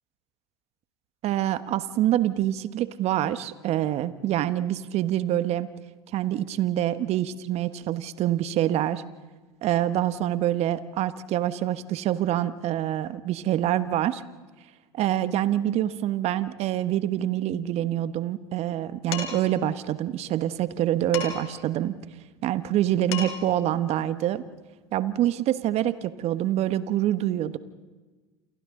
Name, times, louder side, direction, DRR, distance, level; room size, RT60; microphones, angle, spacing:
voice 1, 1.2-5.7 6.1-9.0 9.6-14.2 14.9-21.9 22.4-24.4 24.9-27.6, right 12 dB, 50° right, 13 dB, 1.3 m, -26 dB
Dishes pots and pans, 19.1-19.5 21.1-21.6 22.8-22.9 23.1-23.6, left 7 dB, 70° left, 5.0 m, -33 dB
29.5 x 28.0 x 3.8 m, 1.3 s
hypercardioid pair, 80°, 14 cm